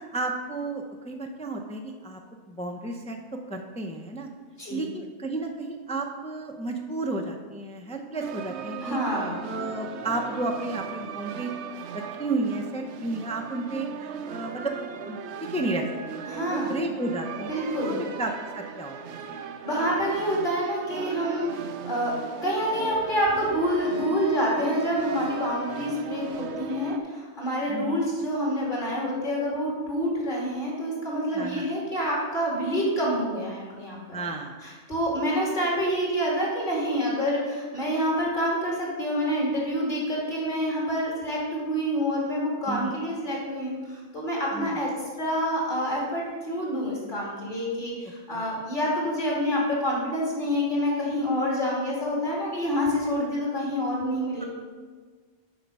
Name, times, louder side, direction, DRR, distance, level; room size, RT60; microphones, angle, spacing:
voice 1, 0.0-2.2 2.5-4.3 4.7-9.0 9.4-11.5 11.9-14.8 15.0-15.2 15.5-15.8 16.1-16.2 16.5-19.2 27.7-28.0 31.3-31.7 34.1-34.5 42.6-42.9 44.5-44.8 48.3-48.4, right 2 dB, 10° left, 2 dB, 0.4 m, -32 dB
sound 1, 8.2-27.0, right 7 dB, 70° right, 0.8 m, -38 dB
voice 2, 8.8-9.4 16.3-16.8 17.5-18.0 19.6-22.1 22.4-34.2 34.6-54.4, equal, 40° left, -4 dB, 2.7 m, -27 dB
Wind instrument woodwind instrument, 22.6-26.8, left 1 dB, 25° left, 1.0 m, -41 dB
8.1 x 6.0 x 5.4 m, 1.5 s
omnidirectional pair, 1.3 m